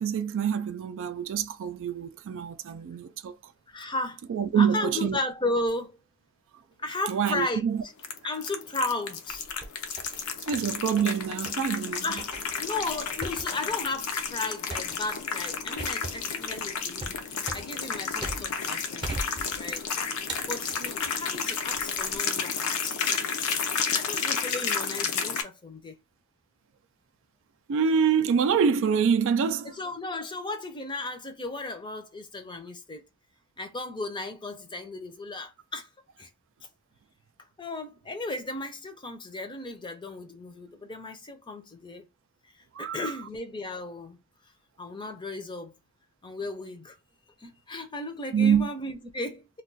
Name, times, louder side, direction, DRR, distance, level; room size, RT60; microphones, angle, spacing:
voice 1, 0.0-3.4 4.3-5.2 7.1-7.8 10.4-12.0 27.7-29.7 42.7-43.1 48.3-48.7, right 7 dB, 60° right, 0.3 m, -26 dB
voice 2, 3.7-4.2 4.6-6.0 6.8-7.6 8.2-9.4 12.0-12.3 12.6-19.1 19.6-19.9 20.5-23.0 23.7-26.0 29.6-33.0 33.6-35.9 36.2-36.3 37.6-42.1 42.8-44.2 44.8-45.7 46.2-47.0 47.4-49.5, left 2 dB, 20° left, 0.5 m, -35 dB
sound 1, 8.0-25.4, left 6 dB, 75° left, 0.6 m, -31 dB
sound 2, 9.3-10.2 10.5-11.2 11.5-11.7 12.2-18.7 19.0-19.9 20.3-21.2 21.8-22.2, right 2 dB, 20° right, 0.6 m, -39 dB
2.3 x 2.3 x 3.9 m
head